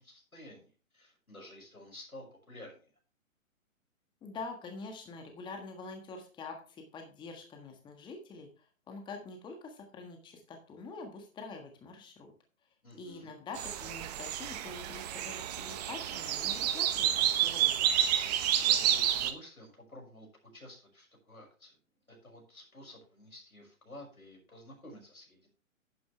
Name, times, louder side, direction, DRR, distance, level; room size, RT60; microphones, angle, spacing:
voice 1, 0.0-2.9 12.8-13.3 18.6-21.8 22.1-25.5, left 1 dB, 85° left, 2 dB, 6.1 m, -51 dB
voice 2, 4.2-12.3 12.9-17.9, left 3 dB, 10° left, 4 dB, 1.6 m, -45 dB
sound 1, 13.5-19.3, right 10 dB, 30° right, 1.2 m, -30 dB
11.0 x 9.4 x 3.2 m, 0.36 s
figure-of-eight pair, 125°, 41 cm